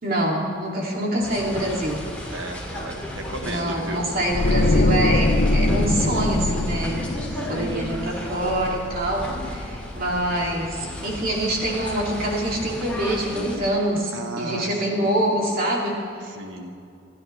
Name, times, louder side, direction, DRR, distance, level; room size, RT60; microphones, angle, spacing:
voice 1, 0.0-2.0 3.4-7.0 7.5-16.3, right 1 dB, 50° right, -2 dB, 2.8 m, -25 dB
sound 1, 1.2-13.6, left 1 dB, 5° left, 2.6 m, -34 dB
voice 2, 2.3-4.1 7.3-7.8 14.1-15.5 16.3-16.8, right 2 dB, 75° right, 4 dB, 1.4 m, -35 dB
sound 2, 4.3-9.4 9.7-9.9, left 2 dB, 55° left, 0.7 m, -23 dB
28.5 x 10.5 x 3.4 m, 2.3 s
head